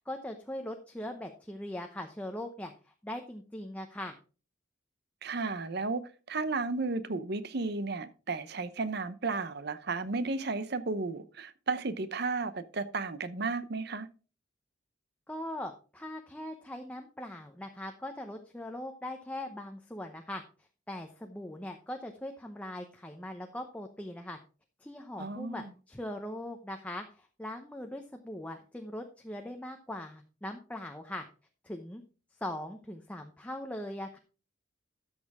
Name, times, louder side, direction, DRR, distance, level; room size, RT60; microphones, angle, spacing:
voice 1, 0.0-4.2 15.3-20.4 20.9-24.4 24.8-31.2 31.6-32.0 32.4-34.2, left 1 dB, 5° left, 0.7 m, -40 dB
voice 2, 5.2-14.1 25.2-25.7, right 3 dB, 55° right, 0.8 m, -33 dB
13.0 x 6.4 x 3.6 m
head